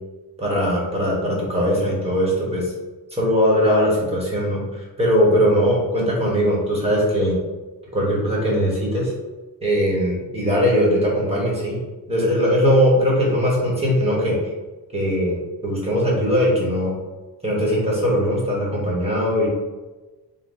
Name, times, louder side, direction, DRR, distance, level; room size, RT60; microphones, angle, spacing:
voice 1, 0.4-2.7 3.1-7.3 7.9-9.1 9.6-11.8 12.1-14.4 14.9-15.4 15.6-16.9 17.4-19.5, equal, 15° right, -4 dB, 1.0 m, -20 dB
3.8 x 2.1 x 4.0 m, 1.2 s
wide cardioid pair, 160°, 40 cm